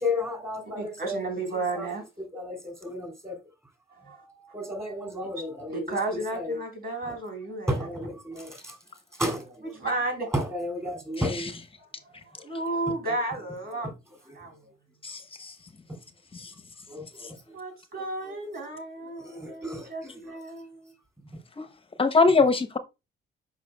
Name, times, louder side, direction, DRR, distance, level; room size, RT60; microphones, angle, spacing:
voice 1, 0.0-1.1 1.7-1.9 2.3-3.4 4.5-5.8 6.3-6.5 7.7-8.5 9.2-9.4 10.3-11.5 16.9-17.0 19.3-19.9, left 1 dB, 15° right, 3.0 m, -31 dB
voice 2, 0.6-2.1 3.9-4.2 5.2-5.3 5.7-7.9 9.6-10.3 11.8-13.9 14.3-14.6 17.5-20.9, right 2 dB, 50° right, 3.5 m, -33 dB
voice 3, 11.2-11.5 15.0-15.5 21.6-21.7 22.0-22.8, left 4 dB, 25° left, 0.8 m, -23 dB
7.4 x 5.6 x 2.2 m
cardioid pair, 90°, 20 cm